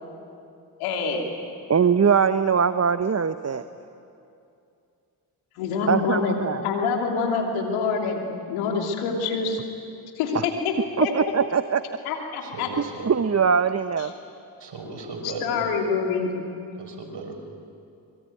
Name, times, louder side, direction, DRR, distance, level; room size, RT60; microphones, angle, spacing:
voice 1, 0.8-1.3 5.5-6.3 6.6-8.2 8.5-9.6 10.2-10.7 11.0-11.1 12.0-12.7 15.2-16.3, left 5 dB, 90° left, 1 dB, 3.0 m, -26 dB
voice 2, 1.7-3.6 5.9-6.7 11.0-11.8 13.0-14.1, right 6 dB, 30° right, 11 dB, 1.0 m, -21 dB
voice 3, 12.4-13.1 14.6-15.6 16.8-17.3, right 3 dB, 60° right, 2 dB, 5.8 m, -36 dB
24.5 x 23.0 x 9.3 m, 2.6 s
hypercardioid pair, 40°, 48 cm